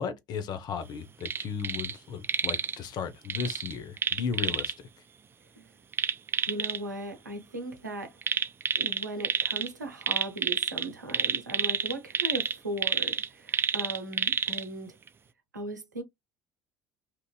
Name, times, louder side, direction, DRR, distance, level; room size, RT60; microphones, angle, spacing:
voice 1, 0.0-4.7, left 6 dB, 45° left, 0.7 m, -35 dB
sound 1, 1.2-1.9 2.2-2.8 3.3-4.7 5.9-6.8 8.2-9.7 10.0-14.6 15.1-15.2, right 6 dB, 25° right, 0.3 m, -29 dB
voice 2, 6.5-8.1 8.7-15.0 15.5-16.0, right 2 dB, 85° right, 0.6 m, -38 dB
2.9 x 2.5 x 2.2 m
figure-of-eight pair, 60°, 9 cm